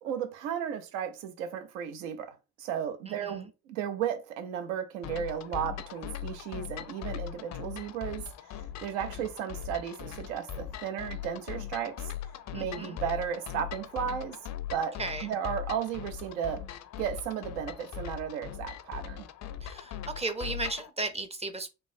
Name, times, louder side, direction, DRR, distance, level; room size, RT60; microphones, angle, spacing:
voice 1, 0.0-8.3 8.8-12.1 12.5-14.4 14.7-16.6 17.0-19.3, right 8 dB, 80° right, 0.5 m, -34 dB
voice 2, 3.1-3.5 12.5-13.0 15.0-15.3 19.6-21.7, right 2 dB, 20° right, 0.5 m, -35 dB
sound 1, 5.0-20.9, left 10 dB, 50° left, 0.4 m, -40 dB
3.0 x 2.1 x 2.5 m
hypercardioid pair, 45°, 36 cm